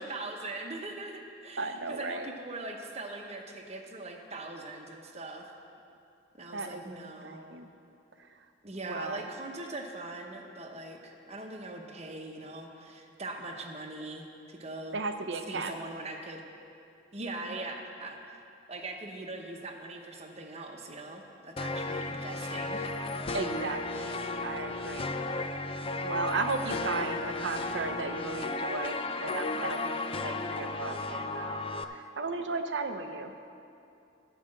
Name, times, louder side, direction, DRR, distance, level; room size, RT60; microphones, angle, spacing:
voice 1, 0.0-5.5 6.3-7.4 8.6-15.0 15.5-16.4 17.1-18.2 18.7-22.9 26.9-27.4, right 2 dB, 35° right, 2 dB, 1.0 m, -41 dB
voice 2, 1.6-2.3 6.5-7.7 8.8-9.2 14.9-15.7 23.3-25.1 25.8-31.6 31.8-33.3, right 3 dB, 75° right, 7 dB, 0.7 m, -35 dB
sound 1, 21.6-31.8, left 2 dB, 30° left, 0.4 m, -34 dB
13.5 x 5.1 x 7.5 m, 2.6 s
head